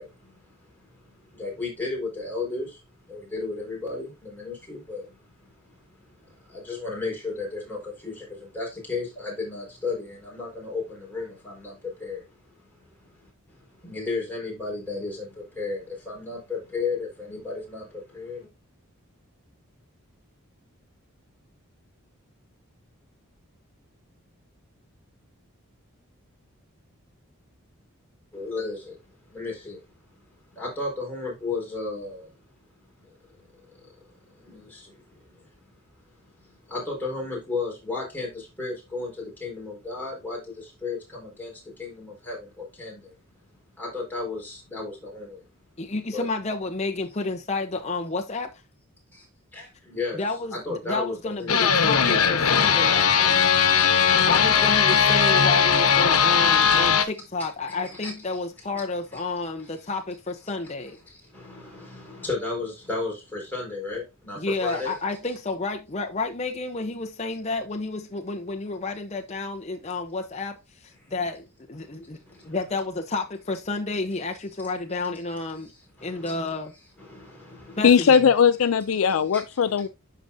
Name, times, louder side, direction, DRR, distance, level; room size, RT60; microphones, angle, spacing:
voice 1, 0.0-18.5 28.3-29.8 30.3-32.3 33.0-35.7 36.0-43.2 43.8-45.5 46.1-46.3 49.1-49.3 49.5-50.2 50.5-51.6 54.2-54.3 56.2-56.3 56.6-57.0 57.8-58.1 58.7-58.8 59.1-59.2 59.6-59.9 61.0-65.0 71.0-71.1 71.8-71.9 72.3-72.6 75.6-76.3 77.0-78.0 79.3-79.8, left 3 dB, 10° left, 4.6 m, -35 dB
voice 2, 45.8-48.5 50.1-53.5 54.3-61.0 64.4-72.2 72.5-75.7 76.0-76.7 77.8-78.3, left 3 dB, 30° left, 0.8 m, -30 dB
sound 1, 51.5-57.0, left 7 dB, 85° left, 1.1 m, -19 dB
voice 3, 77.8-79.9, left 7 dB, 65° left, 0.4 m, -19 dB
12.0 x 4.9 x 2.7 m
head